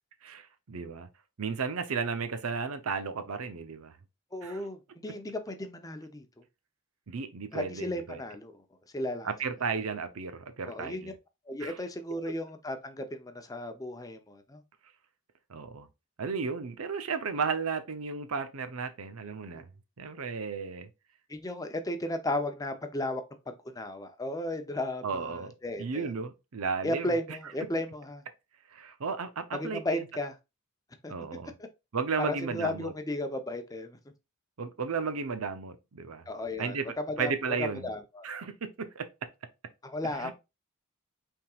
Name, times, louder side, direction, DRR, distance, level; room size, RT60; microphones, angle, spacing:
voice 1, 0.2-1.1 1.4-3.9 4.4-4.6 7.1-8.2 9.2-11.1 11.6-11.8 15.5-15.9 16.2-19.7 20.0-20.9 25.0-27.4 28.7-30.1 31.1-31.5 31.9-32.9 34.6-36.2 36.6-36.9 37.2-37.9 38.2-39.1 40.1-40.3, right 5 dB, 85° right, 0.7 m, -34 dB
voice 2, 4.3-6.3 7.5-8.6 8.9-9.3 10.6-11.1 11.5-14.6 19.5-19.6 21.3-26.1 26.8-28.2 29.5-30.3 31.0-31.1 32.2-34.0 36.3-38.2 39.8-40.3, left 1 dB, 15° left, 0.6 m, -35 dB
5.7 x 3.6 x 2.4 m
head